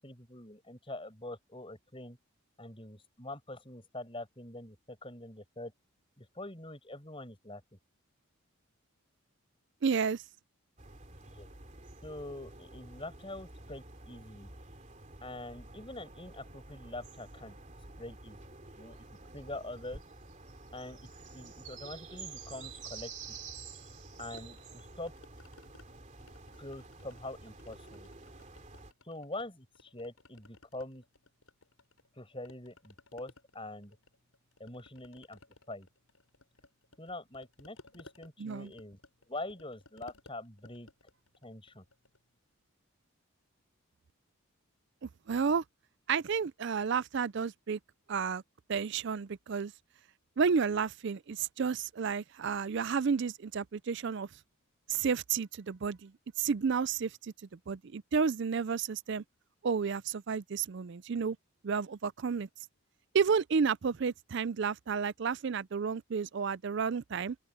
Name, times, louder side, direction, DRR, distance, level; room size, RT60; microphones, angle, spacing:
voice 1, 0.0-2.2 2.6-5.7 6.2-7.6 11.2-11.5 12.0-14.5 15.2-17.6 18.0-18.4 18.8-19.0 19.3-20.0 20.7-21.0 21.3-23.1 24.2-25.1 26.6-28.1 29.0-31.0 32.2-34.0 34.6-35.4 35.7-35.9 37.0-39.0 39.3-40.9 41.4-41.8, left 2 dB, 25° left, 7.1 m, -44 dB
voice 2, 9.8-10.2 38.4-38.7 45.0-45.6 46.1-47.8 48.1-48.4 48.7-49.7 50.4-54.3 54.9-56.1 56.4-59.2 59.6-61.4 61.6-62.5 63.1-67.4, right 6 dB, 55° right, 0.4 m, -31 dB
sound 1, 10.8-28.9, right 3 dB, 35° right, 3.1 m, -50 dB
sound 2, 24.2-25.9 26.2-27.3 27.6-29.5 29.8-32.2 32.4-42.3, left 2 dB, 75° left, 5.9 m, -59 dB
open air
head